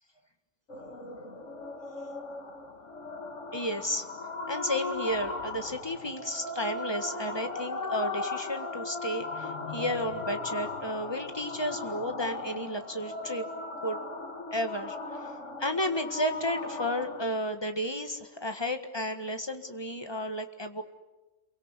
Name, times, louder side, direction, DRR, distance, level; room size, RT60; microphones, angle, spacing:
sound 1, 0.7-17.2, left 3 dB, 75° left, 2.3 m, -37 dB
voice 1, 3.5-4.0 4.5-13.4 13.8-14.0 14.5-15.2 15.6-20.8, equal, 20° left, 6 dB, 1.7 m, -32 dB
27.0 x 23.5 x 8.2 m, 1.1 s
omnidirectional pair, 1.3 m